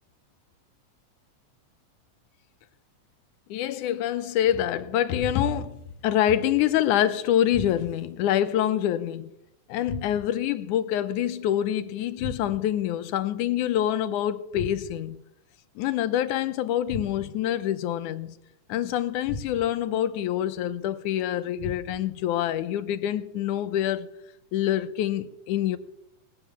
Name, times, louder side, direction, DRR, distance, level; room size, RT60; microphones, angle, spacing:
voice 1, 3.5-9.3 9.7-15.2 15.8-18.4 18.7-24.1 24.5-25.8, left 11 dB, 80° left, 2.2 m, -26 dB
sound 1, 5.2-5.8 7.5-8.1 9.8-10.5 12.2-12.8 14.5-15.2 16.9-17.5 19.2-19.9 21.6-22.2, left 2 dB, 50° left, 2.7 m, -38 dB
19.0 x 9.5 x 7.1 m
omnidirectional pair, 3.6 m